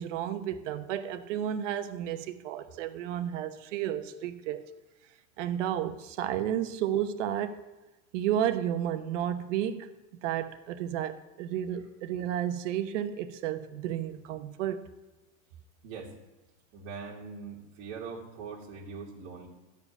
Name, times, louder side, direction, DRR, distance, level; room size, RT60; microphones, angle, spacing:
voice 1, 0.0-4.6 5.4-7.6 8.1-9.9 10.2-14.9, right 10 dB, 65° right, 1.1 m, -32 dB
voice 2, 15.8-16.1 16.7-19.5, right 5 dB, 50° right, 2.5 m, -42 dB
14.0 x 4.9 x 8.2 m
supercardioid pair, 155°, 38 cm